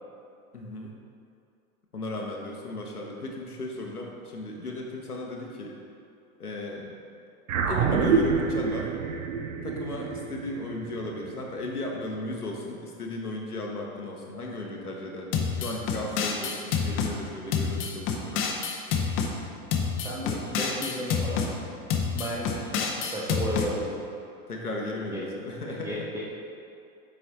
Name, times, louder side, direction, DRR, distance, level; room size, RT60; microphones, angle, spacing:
voice 1, 0.5-0.9 1.9-5.8 6.4-6.9 7.7-8.9 9.6-18.5 24.5-26.0, left 2 dB, 85° left, -1 dB, 1.1 m, -35 dB
sound 1, 7.5-12.1, right 5 dB, 60° right, 0.7 m, -27 dB
sound 2, 15.3-17.1 17.5-19.3 19.7-21.5 21.9-23.7, left 6 dB, 30° left, 0.7 m, -28 dB
voice 2, 20.0-21.5 22.1-23.9 25.1-25.2 25.6-26.2, right 1 dB, 10° right, -6 dB, 0.3 m, -33 dB
7.4 x 4.2 x 4.1 m, 2.5 s
figure-of-eight pair, 90°, 44 cm